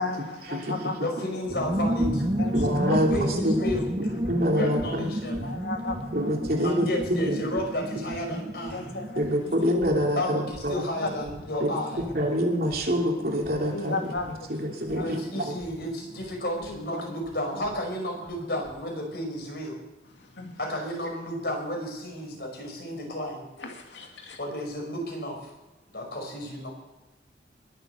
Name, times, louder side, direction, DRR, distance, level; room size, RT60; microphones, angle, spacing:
voice 1, 0.0-1.1 2.4-2.9 3.6-3.7 5.4-6.3 8.0-8.1 8.7-9.4 10.6-11.6 13.6-15.1 16.6-17.1 20.1-20.6 23.6-24.4, left 3 dB, 85° left, 2 dB, 2.4 m, -36 dB
voice 2, 1.0-2.2 2.9-3.9 4.5-5.5 6.6-8.9 10.2-12.1 15.0-19.8 20.6-23.5 24.4-25.5 25.9-26.7, left 1 dB, 60° left, 1 dB, 5.4 m, -32 dB
sound 1, 1.5-17.8 18.0-18.1 18.3-18.8, equal, 25° right, 0.7 m, -33 dB
voice 3, 2.5-3.1 3.4-3.6 4.0-5.1 6.1-7.5 9.1-10.7 11.6-11.7 12.1-14.0 14.5-15.6, equal, 55° right, 0 dB, 3.1 m, -26 dB
21.0 x 8.1 x 6.9 m, 1.1 s
head